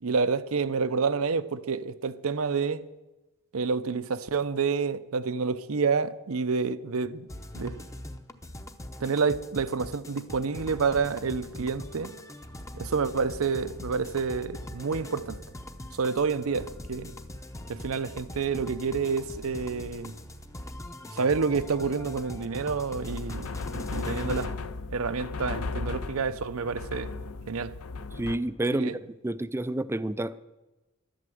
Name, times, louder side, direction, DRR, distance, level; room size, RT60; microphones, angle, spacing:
voice 1, 0.0-2.9 3.5-7.3 7.5-7.8 9.0-12.1 12.7-15.4 15.9-17.1 17.7-20.1 21.1-24.5 24.9-27.1 27.5-27.8 28.8-28.9, right 5 dB, 70° right, 0.7 m, -28 dB
sound 1, 7.3-24.5, left 1 dB, 15° left, 0.8 m, -42 dB
sound 2, 22.9-28.4, left 3 dB, 75° left, 0.7 m, -36 dB
voice 2, 28.1-30.4, right 1 dB, 10° right, 0.4 m, -29 dB
11.5 x 11.0 x 7.7 m
head